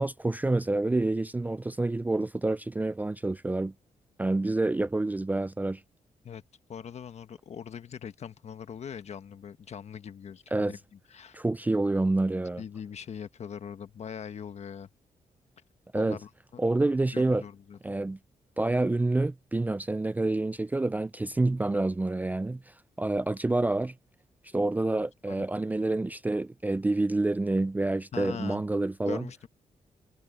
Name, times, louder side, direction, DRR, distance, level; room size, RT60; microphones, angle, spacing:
voice 1, 0.0-3.7 4.2-5.8 10.5-10.7 11.3-12.6 15.9-16.2 16.6-17.4 17.8-18.2 18.6-23.9 24.5-29.2, right 2 dB, 10° right, 0.4 m, -28 dB
voice 2, 6.7-11.4 12.6-14.9 15.9-16.3 17.1-17.8 25.3-25.5 28.1-28.6 29.0-29.5, left 7 dB, 55° left, 1.2 m, -41 dB
cardioid pair, 125°, 13 cm